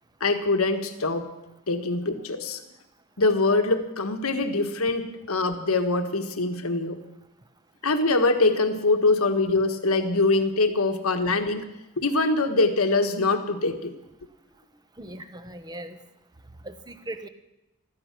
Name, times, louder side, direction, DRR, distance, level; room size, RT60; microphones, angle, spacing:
voice 1, 0.2-1.3 1.7-2.6 3.2-7.0 7.8-11.6 12.0-13.9, left 3 dB, 80° left, 7 dB, 1.5 m, -23 dB
voice 2, 15.0-16.0 16.6-17.3, right 1 dB, 20° right, 10 dB, 1.0 m, -39 dB
15.5 x 13.5 x 6.1 m, 0.95 s
head